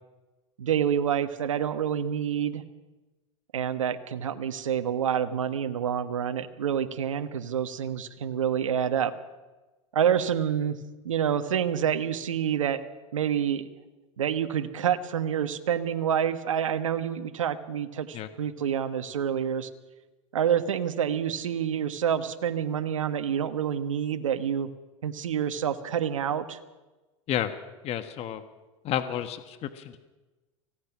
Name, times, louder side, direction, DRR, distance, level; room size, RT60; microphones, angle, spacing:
voice 1, 0.6-2.6 3.5-9.1 9.9-10.8 11.0-12.8 13.1-13.6 14.2-19.7 20.3-24.7 25.0-26.6, right 8 dB, 90° right, 9 dB, 1.4 m, -27 dB
voice 2, 27.3-27.6 27.8-28.4 28.8-30.0, left 11 dB, 40° left, 10 dB, 1.5 m, -31 dB
25.0 x 17.5 x 6.1 m, 1.2 s
hypercardioid pair, 110°, 16 cm